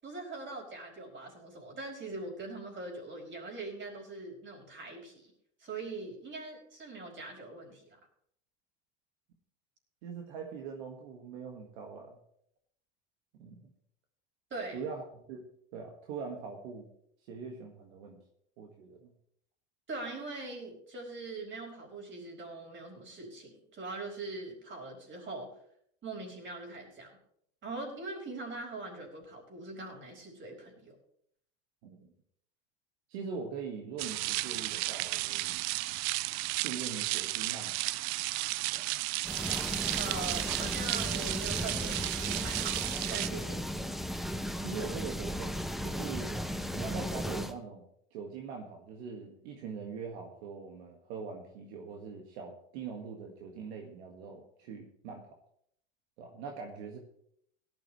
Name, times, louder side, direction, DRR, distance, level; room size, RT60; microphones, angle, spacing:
voice 1, 0.0-5.3 5.6-7.8 14.5-14.8 19.9-25.5 26.0-27.2 27.6-30.9 40.0-42.8 43.1-43.7, right 3 dB, 35° right, 1 dB, 5.1 m, -42 dB
voice 2, 10.0-12.2 13.4-13.7 14.7-16.9 17.3-18.2 18.6-19.1 31.8-32.1 33.1-35.6 36.6-37.7 38.7-38.8 43.8-43.9 44.6-46.4 46.7-55.3 56.2-57.0, right 5 dB, 75° right, 2 dB, 1.9 m, -42 dB
sound 1, 34.0-43.3, right 20 dB, 55° right, 0.5 m, -33 dB
sound 2, 39.2-47.5, equal, ahead, 0.9 m, -36 dB
17.5 x 12.0 x 3.2 m, 0.69 s
hypercardioid pair, 90°, 33 cm